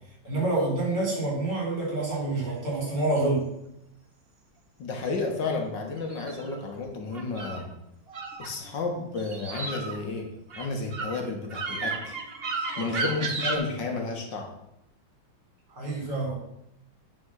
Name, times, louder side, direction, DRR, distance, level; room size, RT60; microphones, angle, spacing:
voice 1, 0.2-3.4 12.7-13.1 15.7-16.3, right 2 dB, 55° right, -3 dB, 4.7 m, -27 dB
sound 1, 2.3-3.3 6.0-7.6 8.1-8.8 9.1-13.6, right 3 dB, 40° right, 1.0 m, -34 dB
voice 2, 4.8-7.7 8.4-10.3 10.5-12.2 12.8-14.5, left 3 dB, 65° left, 3 dB, 1.9 m, -32 dB
9.5 x 5.3 x 6.5 m, 0.82 s
omnidirectional pair, 2.2 m